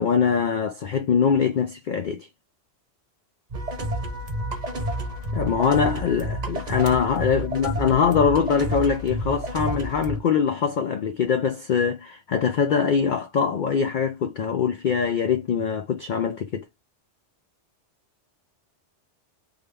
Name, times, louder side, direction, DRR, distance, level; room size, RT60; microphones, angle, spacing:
voice 1, 0.0-2.3 5.3-16.6, left 6 dB, 55° left, 0.5 m, -23 dB
sound 1, 3.5-10.2, right 1 dB, 40° right, 0.9 m, -30 dB
3.7 x 2.1 x 3.3 m
omnidirectional pair, 1.2 m